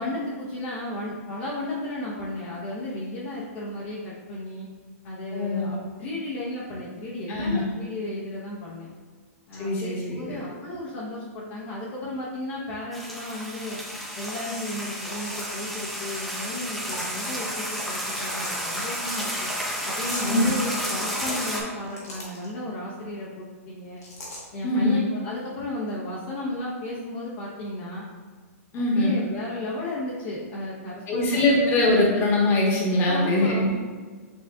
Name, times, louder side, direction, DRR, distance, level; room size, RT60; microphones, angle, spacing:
voice 1, 0.0-4.7 5.0-8.9 9.5-13.8 14.2-19.5 19.8-24.0 24.5-28.0 28.7-31.7 33.0-33.8, left 1 dB, 45° left, -6 dB, 0.8 m, -34 dB
voice 2, 5.3-5.7 7.3-7.6 9.6-10.4 20.2-20.5 24.6-25.0 28.7-29.1 31.1-33.7, left 2 dB, 30° left, -3 dB, 1.2 m, -22 dB
sound 1, 12.9-21.6, equal, ahead, 0.7 m, -31 dB
sound 2, 15.0-15.7 16.8-17.2 18.2-18.7 20.0-20.4 21.6-22.5 24.0-24.4, left 1 dB, 90° left, 1.3 m, -39 dB
7.0 x 2.5 x 2.3 m, 1.5 s
hypercardioid pair, 135°, 8 cm